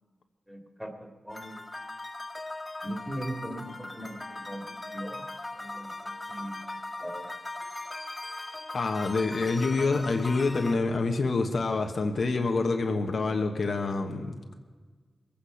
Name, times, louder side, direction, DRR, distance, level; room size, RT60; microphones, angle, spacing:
voice 1, 0.5-1.7 2.8-5.2 5.5-6.6 7.0-7.3, right 1 dB, ahead, 3 dB, 2.6 m, -39 dB
sound 1, 1.3-10.8, left 2 dB, 25° left, 1.8 m, -39 dB
voice 2, 8.7-14.4, left 3 dB, 70° left, 4 dB, 1.2 m, -27 dB
21.0 x 8.7 x 5.8 m, 1.4 s
cardioid pair, 45°, 0 cm